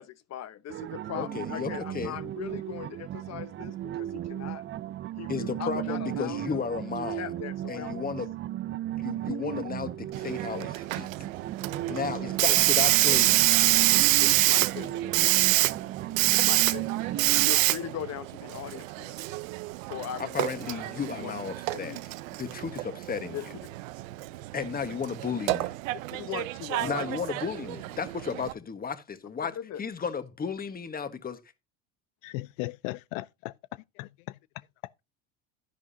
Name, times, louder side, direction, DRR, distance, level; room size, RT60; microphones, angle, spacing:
voice 1, 0.0-4.6 5.2-6.7 7.1-8.1 11.9-12.0 12.4-12.6 14.2-15.3 16.2-17.2 17.4-19.2 19.9-21.3 21.7-22.0 23.3-23.5 25.9-27.1 29.4-29.8, left 11 dB, 40° left, 1.1 m, -40 dB
sound 1, 0.7-17.5, right 13 dB, 30° right, 0.5 m, -35 dB
voice 2, 1.1-2.2 5.3-7.3 7.7-8.3 9.0-11.1 11.9-13.4 20.2-22.0 22.4-23.5 24.5-25.7 26.8-31.4, left 6 dB, 20° left, 1.5 m, -34 dB
Hiss, 10.1-28.5, right 20 dB, 80° right, 0.7 m, -27 dB
voice 3, 32.2-33.5 34.0-34.4, left 20 dB, 80° left, 0.5 m, -37 dB
11.0 x 10.5 x 2.8 m
supercardioid pair, 100°, 39 cm